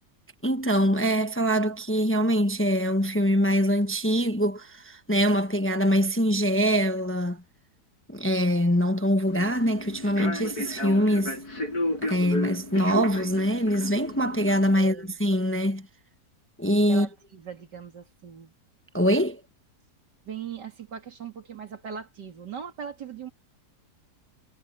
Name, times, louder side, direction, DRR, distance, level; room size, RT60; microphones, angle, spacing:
voice 1, 0.4-7.4 8.1-11.3 12.0-15.9 16.6-17.1 18.9-19.4, equal, 10° left, 0.9 m, -24 dB
Human voice / Subway metro underground, 9.3-14.7, left 1 dB, 65° left, 5.4 m, -33 dB
voice 2, 14.8-15.2 16.9-18.5 20.3-23.3, right 7 dB, 90° right, 3.0 m, -39 dB
omnidirectional pair, 1.8 m